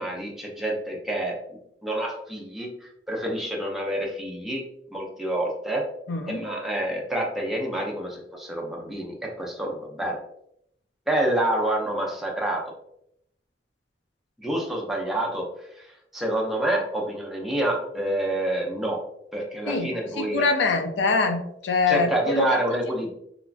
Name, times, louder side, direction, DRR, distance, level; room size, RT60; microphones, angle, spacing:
voice 1, 0.0-1.4 1.8-4.6 4.9-5.8 6.3-10.2 11.1-12.6 14.4-15.4 15.8-15.9 16.1-19.0 19.3-20.5 21.9-23.1, right 1 dB, ahead, -2 dB, 0.5 m, -27 dB
voice 2, 6.1-6.4 19.7-19.9 20.2-22.5, left 3 dB, 85° left, 6 dB, 0.4 m, -24 dB
3.0 x 2.3 x 2.4 m, 0.74 s
head